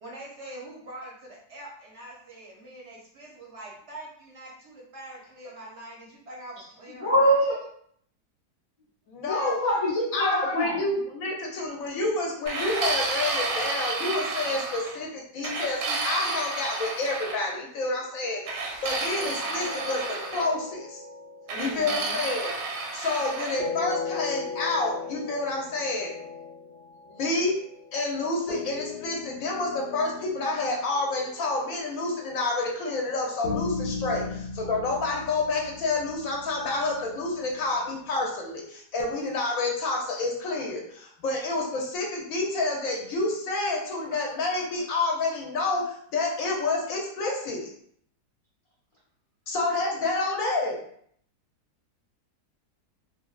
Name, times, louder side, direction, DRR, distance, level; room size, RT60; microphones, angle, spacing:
voice 1, 0.0-7.4 21.5-22.2, right 1 dB, 65° right, -3 dB, 0.7 m, -43 dB
voice 2, 7.0-7.6 9.2-11.0, equal, 35° left, -8 dB, 0.6 m, -24 dB
voice 3, 9.1-9.6 10.1-21.0 21.6-22.5 22.9-26.1 27.1-27.6 27.9-47.6 49.5-50.8, left 2 dB, 65° left, -1 dB, 1.0 m, -29 dB
sound 1, 12.5-15.0 15.4-17.4 18.5-20.5 21.5-23.6, right 3 dB, 90° right, 1.2 m, -31 dB
sound 2, 19.1-22.8 23.6-32.5 33.4-38.1, left 4 dB, 80° left, 0.5 m, -38 dB
3.2 x 2.3 x 2.3 m, 0.64 s
omnidirectional pair, 1.7 m